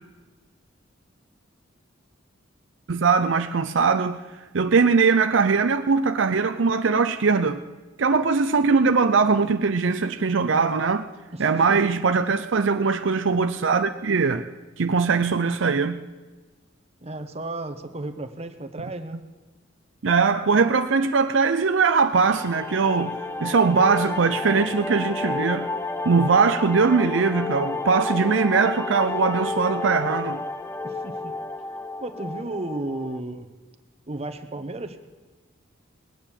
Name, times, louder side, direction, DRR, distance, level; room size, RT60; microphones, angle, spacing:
voice 1, 2.9-4.2 4.5-7.6 8.0-11.1 11.4-14.4 14.8-16.0 20.0-25.7 26.0-30.4, right 5 dB, 65° right, 0.6 m, -21 dB
voice 2, 11.3-11.8 17.0-19.2 30.8-31.3 32.0-33.5 34.1-35.0, right 2 dB, 30° right, 1.1 m, -33 dB
sound 1, 22.1-33.2, left 3 dB, 15° left, 0.6 m, -31 dB
20.0 x 9.1 x 7.3 m
head